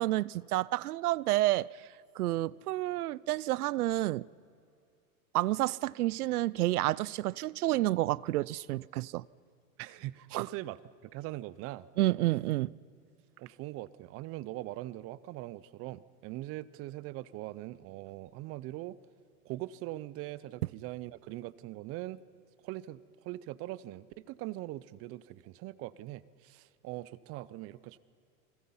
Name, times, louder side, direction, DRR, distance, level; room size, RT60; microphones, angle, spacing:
voice 1, 0.0-1.7 2.2-4.2 5.3-9.2 10.3-10.4 12.0-12.7, right 16 dB, 80° right, 0.6 m, -29 dB
voice 2, 9.8-11.9 13.4-19.0 19.4-22.2 22.6-28.0, right 16 dB, 30° right, 0.6 m, -41 dB
28.5 x 21.0 x 5.5 m
hypercardioid pair, 120°, 44 cm